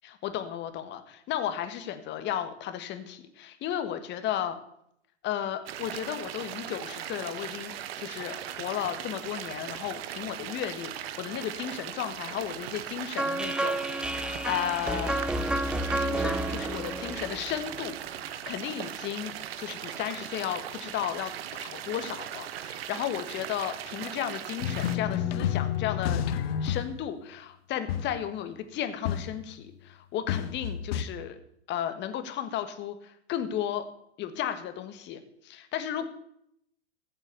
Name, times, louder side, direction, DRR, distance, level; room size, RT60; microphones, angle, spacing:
voice 1, 0.0-4.6 5.2-15.2 16.0-26.2 26.6-31.4 31.7-33.8 34.2-36.1, left 10 dB, 30° left, 9 dB, 1.6 m, -34 dB
sound 1, 5.7-25.0, right 11 dB, 60° right, 1.2 m, -39 dB
sound 2, 13.2-18.2, right 1 dB, 5° right, 0.6 m, -31 dB
sound 3, 24.6-27.0 27.9-28.2 29.1-29.6 30.3-31.0, left 9 dB, 55° left, 1.2 m, -30 dB
14.5 x 7.6 x 6.9 m, 0.72 s
hypercardioid pair, 115°, 35 cm